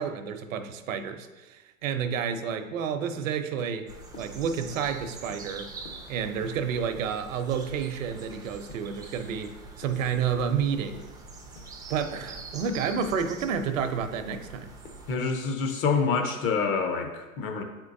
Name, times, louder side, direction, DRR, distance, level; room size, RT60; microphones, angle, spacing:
voice 1, 0.0-3.9 4.2-5.7 6.1-11.0 11.9-14.7, right 7 dB, 65° right, 8 dB, 0.7 m, -30 dB
sound 1, 2.5-2.6 3.0-3.2 3.6-3.7 4.1-4.3 4.7-4.9 5.3-5.4 5.8-6.0 6.4-6.6 7.0-7.2 7.5-7.7 8.1-8.3 8.7-8.9 9.3-9.4 9.8-10.0 10.4-10.6 10.9-11.1 11.6-11.7 12.1-12.3 12.6-12.8 13.2-13.4 13.7-13.9 14.3-14.5 14.8-15.0, left 4 dB, 55° left, 1.3 m, -47 dB
sound 2, 3.9-15.2, right 3 dB, 10° right, 0.4 m, -45 dB
voice 2, 15.1-17.6, left 5 dB, 35° left, 4 dB, 0.8 m, -27 dB
8.0 x 4.4 x 2.6 m, 1.2 s
hypercardioid pair, 115°, 42 cm